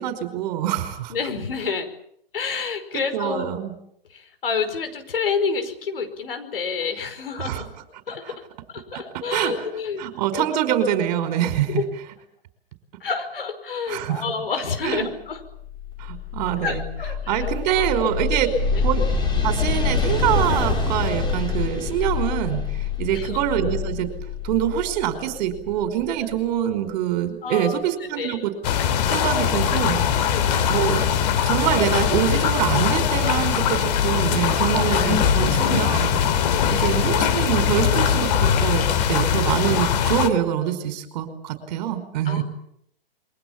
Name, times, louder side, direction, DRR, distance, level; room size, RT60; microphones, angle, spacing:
voice 1, 0.0-1.1 3.1-3.7 7.4-7.6 8.9-9.0 9.3-9.7 10.0-11.7 13.9-14.2 14.8-15.1 16.0-16.8 17.3-18.5 18.8-19.1 19.4-22.7 23.0-24.1 24.4-28.5 29.1-30.3 30.7-31.0 31.5-36.2 36.8-42.4, right 10 dB, 45° right, 9 dB, 5.1 m, -25 dB
voice 2, 1.1-1.9 2.3-3.5 4.1-7.7 8.1-8.4 8.7-10.1 10.3-10.4 11.7-11.8 13.0-15.4 16.6-18.1 18.7-18.8 23.1-23.4 27.4-27.9 28.2-28.4 30.3-30.9 34.7-34.8 36.4-36.9 42.3-42.4, left 5 dB, 70° left, 7 dB, 5.4 m, -29 dB
sound 1, 15.6-26.3, left 4 dB, 15° left, 4.9 m, -26 dB
sound 2, 28.6-40.3, left 8 dB, 45° left, 2.9 m, -21 dB
28.0 x 23.5 x 7.4 m, 0.70 s
figure-of-eight pair, 120°, 30 cm